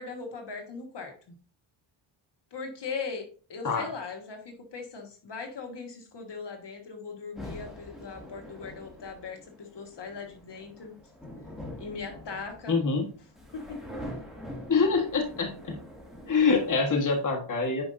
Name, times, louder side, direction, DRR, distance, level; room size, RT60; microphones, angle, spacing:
voice 1, 0.0-1.3 2.5-10.9 11.8-12.8 13.5-13.8, left 4 dB, 60° left, 3 dB, 1.6 m, -39 dB
sound 1, 7.4-16.8, equal, ahead, 2.3 m, -44 dB
voice 2, 12.7-13.1 14.7-15.8 16.3-17.8, left 4 dB, 40° left, 1 dB, 1.5 m, -25 dB
9.6 x 5.2 x 2.6 m, 0.39 s
wide cardioid pair, 115°, 47 cm